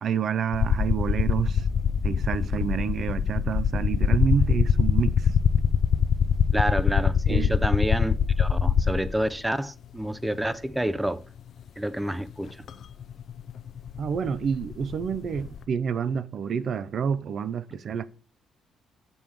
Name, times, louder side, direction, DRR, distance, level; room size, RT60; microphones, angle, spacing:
voice 1, 0.0-1.6 2.0-5.3 7.3-7.5 14.0-18.0, right 7 dB, 60° right, 0.6 m, -28 dB
sound 1, 0.5-9.3 10.4-10.5 12.7-12.8 13.0-15.6, left 7 dB, 65° left, 0.6 m, -23 dB
voice 2, 6.5-11.2 11.8-12.6, right 1 dB, 10° right, 0.5 m, -28 dB
7.0 x 5.5 x 4.7 m
cardioid pair, 90°, 0 cm